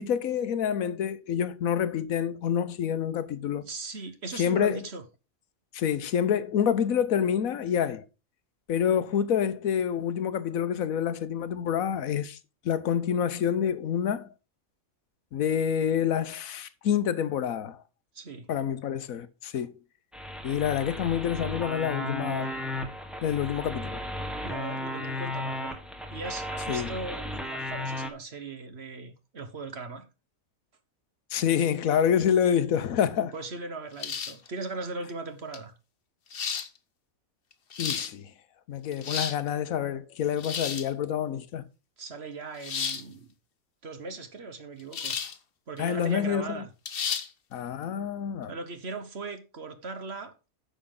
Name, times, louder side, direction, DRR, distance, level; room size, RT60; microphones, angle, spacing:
voice 1, 0.0-3.6 4.4-4.8 5.7-8.0 8.7-12.4 12.6-14.3 15.3-17.8 18.5-19.7 20.4-22.5 23.2-24.0 26.7-27.0 31.3-33.3 37.8-38.3 38.7-41.6 45.8-46.6 47.5-48.5, left 8 dB, 75° left, 1.2 m, -27 dB
voice 2, 3.6-5.0 18.1-18.5 22.4-22.5 24.4-25.8 26.1-30.1 33.2-35.7 42.0-43.3 43.8-45.2 45.7-46.7 48.5-50.3, right 3 dB, 50° right, 1.5 m, -39 dB
sound 1, 20.1-28.1, left 1 dB, ahead, 1.3 m, -35 dB
sound 2, 34.0-34.5 35.5-35.6 36.3-36.7 37.5-38.1 38.8-39.4 40.4-40.9 42.6-43.0 44.9-45.4 45.8-45.9 46.9-47.3, left 6 dB, 45° left, 1.0 m, -32 dB
10.0 x 7.0 x 3.7 m
omnidirectional pair, 1.5 m